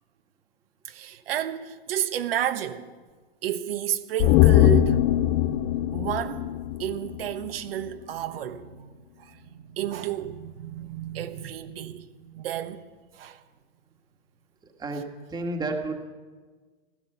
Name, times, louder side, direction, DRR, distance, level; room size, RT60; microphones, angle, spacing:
voice 1, 0.8-2.9 3.4-5.0 5.9-6.5 6.8-8.9 9.2-12.8 13.1-13.4 14.9-15.0, right 11 dB, 65° right, 1.3 m, -31 dB
sound 1, 4.2-7.6 7.9-8.0, left 14 dB, 25° left, 0.4 m, -21 dB
voice 2, 15.3-16.0, right 2 dB, 10° right, 1.8 m, -31 dB
16.5 x 14.0 x 5.7 m
hypercardioid pair, 130°, 32 cm